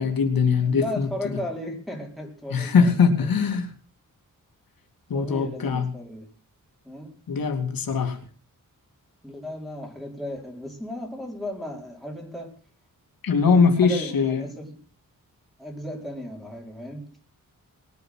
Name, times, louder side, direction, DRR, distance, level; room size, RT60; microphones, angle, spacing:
voice 1, 0.0-1.1 2.5-3.7 5.1-5.9 7.3-8.2 13.2-14.5, left 5 dB, 90° left, 5 dB, 2.6 m, -21 dB
voice 2, 0.7-3.4 5.1-6.3 6.8-7.1 9.2-12.6 13.4-14.8 15.6-17.1, left 1 dB, ahead, 0 dB, 5.0 m, -35 dB
20.5 x 9.7 x 6.5 m, 0.41 s
wide cardioid pair, 115°, 34 cm